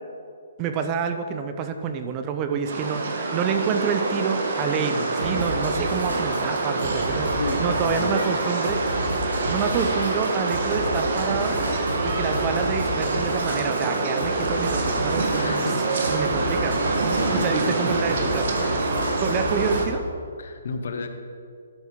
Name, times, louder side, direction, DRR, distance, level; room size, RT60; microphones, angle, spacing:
voice 1, 0.6-8.8 9.5-11.6 12.0-15.7 16.1-16.8 17.3-18.5 19.2-20.0, right 6 dB, 25° right, 7 dB, 0.5 m, -28 dB
sound 1, 2.6-19.9, right 3 dB, 60° right, 1.2 m, -26 dB
sound 2, 5.2-19.9, equal, 90° right, 2.4 m, -31 dB
voice 2, 7.4-8.4 15.4-16.5 17.3-18.3 20.4-21.1, left 4 dB, 65° left, 7 dB, 0.8 m, -32 dB
12.0 x 6.0 x 3.7 m, 2.3 s
hypercardioid pair, 140°, 0 cm